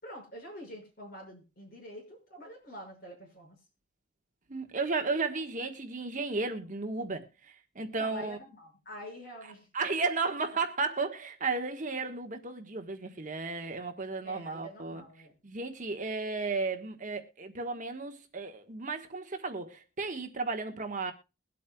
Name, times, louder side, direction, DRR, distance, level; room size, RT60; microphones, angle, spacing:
voice 1, 0.0-3.6 7.9-9.7 14.2-15.3, equal, 45° left, 6.1 m, -46 dB
voice 2, 4.5-8.4 9.7-15.0 15.4-21.1, right 3 dB, 40° right, 1.3 m, -34 dB
22.0 x 8.4 x 2.3 m
head